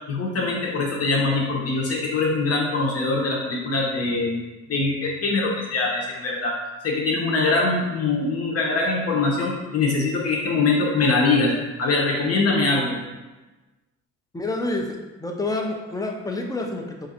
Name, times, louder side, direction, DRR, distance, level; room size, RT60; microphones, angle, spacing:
voice 1, 0.1-4.4 4.7-6.5 6.8-11.5 11.8-12.9, left 3 dB, 50° left, -2 dB, 1.1 m, -23 dB
voice 2, 14.3-17.1, left 2 dB, 10° left, 2 dB, 0.6 m, -28 dB
3.8 x 2.6 x 4.2 m, 1.1 s
cardioid pair, 90°, 30 cm